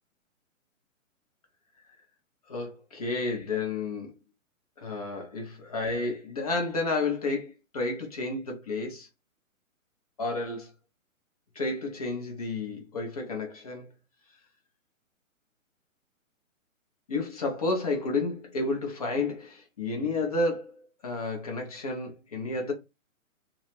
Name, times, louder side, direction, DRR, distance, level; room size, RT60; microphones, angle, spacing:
voice 1, 2.5-4.1 4.8-9.1 10.2-10.7 11.6-13.9 17.1-22.7, left 3 dB, 30° left, 0.5 m, -31 dB
2.3 x 2.0 x 3.1 m
figure-of-eight pair, 125°, 41 cm